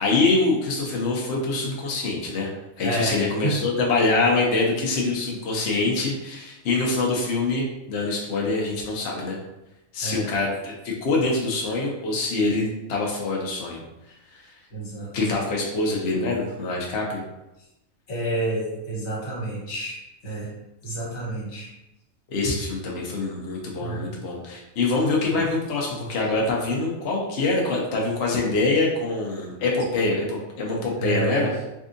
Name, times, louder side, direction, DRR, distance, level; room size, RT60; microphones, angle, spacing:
voice 1, 0.0-2.5 2.8-9.4 9.9-13.8 15.1-17.2 22.3-31.5, left 3 dB, 60° left, -2 dB, 0.8 m, -24 dB
voice 2, 2.8-3.5 10.0-10.3 14.7-15.1 18.1-20.0 20.2-20.5 20.8-21.7 23.8-24.1 25.3-25.5 31.0-31.5, right 1 dB, 80° left, -4 dB, 1.5 m, -29 dB
3.5 x 2.6 x 2.5 m, 0.94 s
omnidirectional pair, 1.4 m